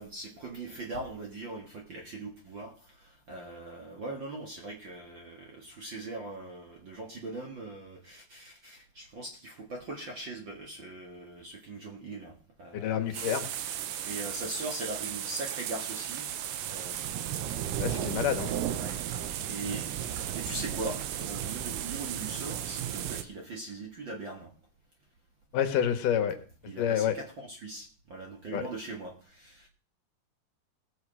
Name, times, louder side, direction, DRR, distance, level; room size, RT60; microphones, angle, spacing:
voice 1, 0.0-16.3 16.6-17.3 18.1-18.3 18.8-19.0 19.4-19.9 20.3-24.5 26.7-29.7, right 2 dB, 45° right, 1 dB, 1.8 m, -41 dB
voice 2, 12.7-13.5 17.7-18.5 25.5-26.4 26.8-27.2 28.5-28.6, left 9 dB, 75° left, 8 dB, 2.7 m, -28 dB
sound 1, 13.1-23.2, right 10 dB, 80° right, 2.6 m, -35 dB
19.0 x 7.2 x 4.8 m, 0.40 s
omnidirectional pair, 4.0 m